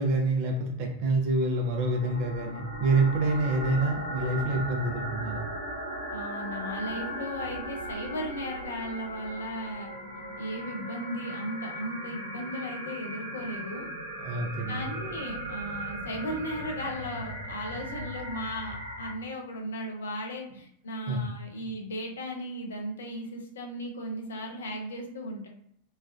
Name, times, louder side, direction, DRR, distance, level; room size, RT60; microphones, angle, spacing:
voice 1, 0.0-5.4 14.2-14.9 21.1-21.2, right 2 dB, 45° right, 2 dB, 0.7 m, -27 dB
sound 1, 1.3-19.1, right 1 dB, 90° right, 1.0 m, -38 dB
voice 2, 6.1-9.9 10.4-13.9 14.7-25.5, equal, 65° left, 2 dB, 0.6 m, -36 dB
3.2 x 2.4 x 2.4 m, 0.69 s
figure-of-eight pair, 90°, 0 cm